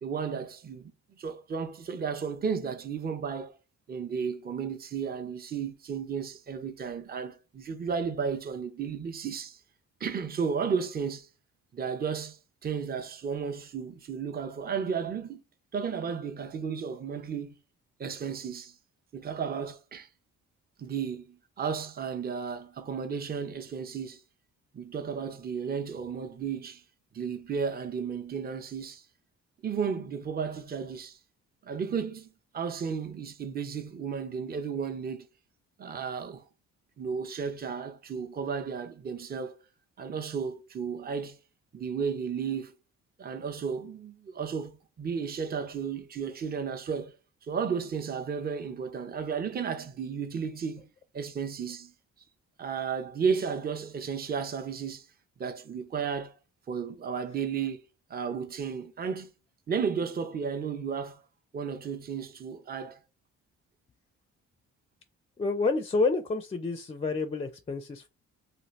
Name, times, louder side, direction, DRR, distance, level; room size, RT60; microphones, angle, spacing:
voice 1, 0.0-3.5 3.9-9.6 10.0-11.3 11.7-15.4 15.7-17.5 18.0-18.7 19.1-20.1 20.8-24.2 24.7-26.8 27.1-29.0 29.6-31.2 31.6-32.3 32.5-35.3 35.8-36.4 37.0-39.6 40.0-41.4 41.7-42.7 43.2-47.2 47.5-50.9 51.1-51.9 52.6-55.1 55.4-56.4 56.7-57.8 58.1-59.3 59.7-61.2 61.5-63.0, right 6 dB, 30° right, 0.6 m, -33 dB
voice 2, 65.4-68.1, left 3 dB, 20° left, 0.4 m, -29 dB
2.7 x 2.5 x 3.1 m
cardioid pair, 90°, 30 cm